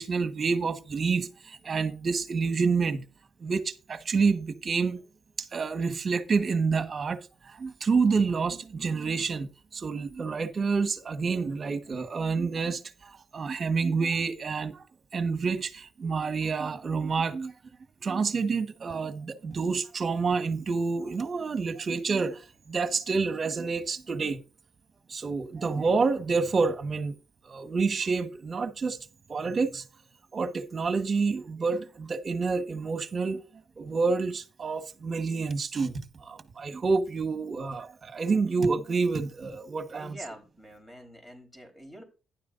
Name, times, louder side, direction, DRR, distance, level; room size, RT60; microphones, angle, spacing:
voice 1, 0.0-3.0 3.4-5.0 5.4-7.2 7.5-14.8 15.1-17.5 18.0-22.4 22.7-24.4 25.1-27.1 27.4-29.0 29.3-29.8 30.3-33.4 33.8-40.1, right 4 dB, 40° right, 1.3 m, -28 dB
voice 2, 39.9-42.0, equal, 15° left, 4.1 m, -46 dB
11.5 x 10.5 x 2.6 m
cardioid pair, 90°, 0 cm